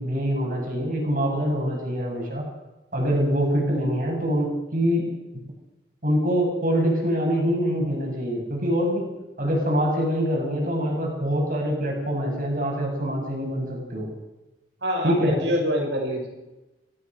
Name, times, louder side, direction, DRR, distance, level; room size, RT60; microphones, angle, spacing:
voice 1, 0.0-2.4 2.9-5.0 6.0-9.1 9.4-14.1 15.0-15.4, equal, 45° right, -1 dB, 7.9 m, -24 dB
voice 2, 14.8-16.3, equal, 85° right, 1 dB, 6.5 m, -25 dB
25.0 x 16.5 x 6.4 m, 1.0 s
head